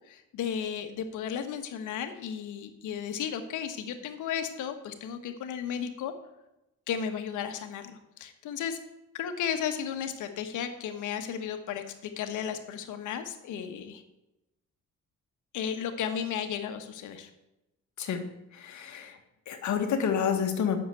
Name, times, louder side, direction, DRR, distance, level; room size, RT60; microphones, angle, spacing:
voice 1, 0.1-6.1 6.9-8.8 9.1-14.0 15.5-17.3, left 8 dB, 85° left, 7 dB, 1.3 m, -34 dB
voice 2, 18.5-19.2 19.4-20.8, left 7 dB, 70° left, 5 dB, 1.7 m, -29 dB
7.9 x 6.7 x 7.8 m, 0.93 s
cardioid pair, 90°, 30 cm